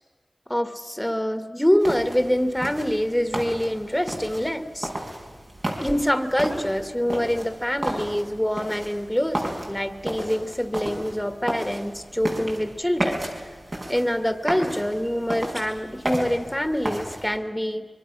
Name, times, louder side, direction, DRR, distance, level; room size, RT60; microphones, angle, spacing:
voice 1, 0.5-4.9 5.8-13.3 13.9-17.9, equal, 5° left, 9 dB, 1.8 m, -25 dB
sound 1, 1.8-17.4, right 1 dB, 55° right, 5.5 m, -33 dB
25.0 x 23.5 x 6.1 m, 1.5 s
wide cardioid pair, 50°, 0 cm